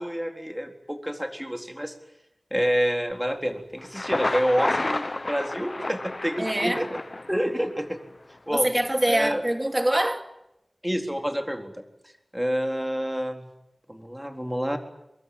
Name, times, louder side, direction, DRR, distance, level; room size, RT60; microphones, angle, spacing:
voice 1, 0.0-1.9 2.5-6.9 7.3-8.0 8.5-8.7 9.1-9.4 10.8-11.8 12.3-13.5 13.9-14.8, equal, 5° right, 4.0 m, -28 dB
Thunder, 3.8-7.8, left 2 dB, 50° left, 0.9 m, -30 dB
voice 2, 6.4-6.8 8.5-10.3, right 1 dB, 20° right, 2.6 m, -24 dB
24.5 x 23.0 x 9.5 m
wide cardioid pair, 55°, 0 cm